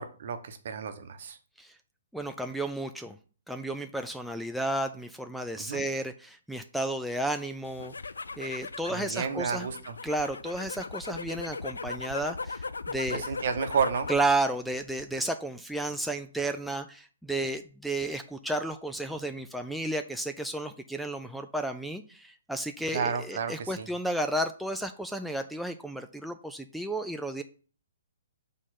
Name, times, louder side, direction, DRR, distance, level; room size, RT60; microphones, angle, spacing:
voice 1, 0.0-1.4 5.6-5.9 8.9-10.0 13.1-14.1 22.9-23.9, right 6 dB, 55° right, 8 dB, 0.9 m, -31 dB
voice 2, 2.1-3.2 3.5-7.9 8.4-9.7 10.0-13.2 14.1-27.4, right 1 dB, ahead, 5 dB, 0.4 m, -32 dB
sound 1, 7.6-14.4 14.7-15.3, left 4 dB, 80° left, 0.4 m, -38 dB
6.2 x 3.8 x 5.8 m, 0.40 s
figure-of-eight pair, 130°, 0 cm